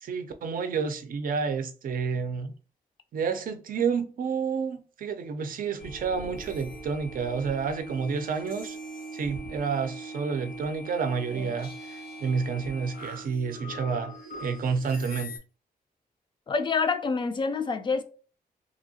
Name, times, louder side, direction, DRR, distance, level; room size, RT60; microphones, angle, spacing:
voice 1, 0.0-2.5 3.1-8.8 9.1-14.1 14.4-15.3, right 5 dB, 65° right, 0.4 m, -30 dB
sound 1, 5.8-15.4, right 1 dB, 85° left, 1.5 m, -41 dB
voice 2, 16.5-18.0, left 4 dB, 30° left, 0.3 m, -27 dB
2.8 x 2.7 x 2.7 m
wide cardioid pair, 130°, 15 cm